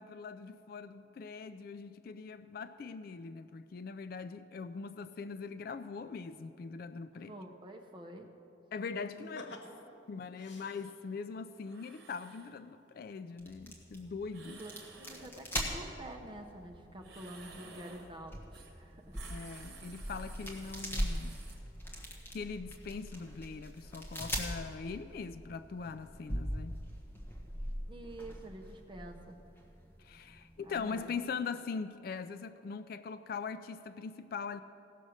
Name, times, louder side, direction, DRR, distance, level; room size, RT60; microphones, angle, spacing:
voice 1, 0.0-7.3 8.7-9.6 10.1-14.6 19.3-21.4 22.3-26.8 30.0-34.6, left 5 dB, 50° left, 13 dB, 0.3 m, -41 dB
voice 2, 7.2-8.3 9.2-10.0 14.4-19.2 27.9-29.4 30.6-31.2, right 1 dB, 25° right, 2 dB, 0.8 m, -48 dB
sound 1, 9.1-11.3 12.7-12.8 13.2-13.7 14.0-14.1, left 1 dB, 65° left, 1.1 m, -52 dB
sound 2, 10.6-11.0 11.6-12.5 14.3-15.3 17.0-18.1 18.5-18.7 19.0-21.5, right 4 dB, 55° right, 1.4 m, -54 dB
sound 3, 13.4-31.1, equal, 10° left, 1.3 m, -42 dB
16.0 x 6.4 x 6.4 m, 2.7 s
head